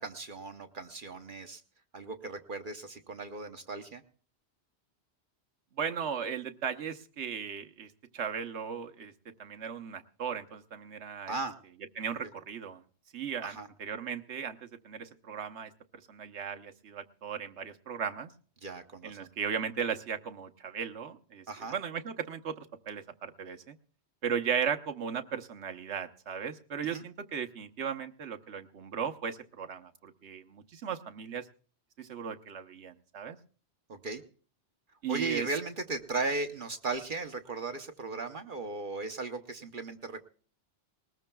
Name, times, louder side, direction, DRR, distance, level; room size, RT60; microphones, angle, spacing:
voice 1, 0.0-1.6 1.9-4.0 11.3-11.5 13.4-13.7 18.6-19.3 21.5-21.7 26.9-27.0 33.9-34.2 35.1-40.3, right 3 dB, 50° right, 6 dB, 0.9 m, -36 dB
voice 2, 5.8-9.1 9.4-11.4 12.0-12.8 13.1-15.7 16.1-18.3 19.0-21.4 21.7-23.8 24.2-31.5 32.0-33.4 35.0-35.5, right 7 dB, 75° right, 7 dB, 1.2 m, -36 dB
20.0 x 20.0 x 2.3 m, 0.43 s
omnidirectional pair, 1.2 m